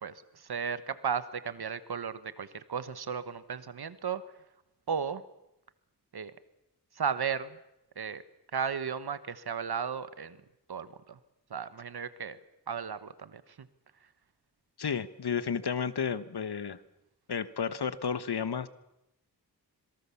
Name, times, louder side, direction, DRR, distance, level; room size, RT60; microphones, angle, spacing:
voice 1, 0.0-4.2 4.9-5.2 6.1-6.3 6.9-7.6 8.0-8.2 8.5-10.4 10.7-11.2 11.5-12.4 12.7-13.7, right 6 dB, 70° right, 13 dB, 1.2 m, -35 dB
voice 2, 14.8-16.8 17.3-18.7, left 6 dB, 75° left, 14 dB, 1.3 m, -32 dB
26.0 x 23.5 x 7.1 m, 0.90 s
wide cardioid pair, 85°, 39 cm